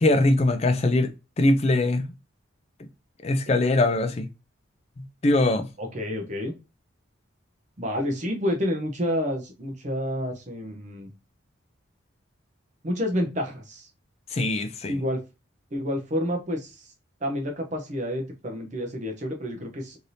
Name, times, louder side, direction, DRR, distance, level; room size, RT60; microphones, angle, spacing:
voice 1, 0.0-1.1 1.4-2.0 3.2-4.3 5.0-5.7 14.3-15.0, left 2 dB, 30° left, 0.4 m, -22 dB
voice 2, 5.8-6.5 7.8-11.1 12.8-13.9 14.9-15.2 15.7-16.9 17.2-20.0, equal, 35° right, 0.6 m, -29 dB
3.3 x 2.7 x 2.6 m
head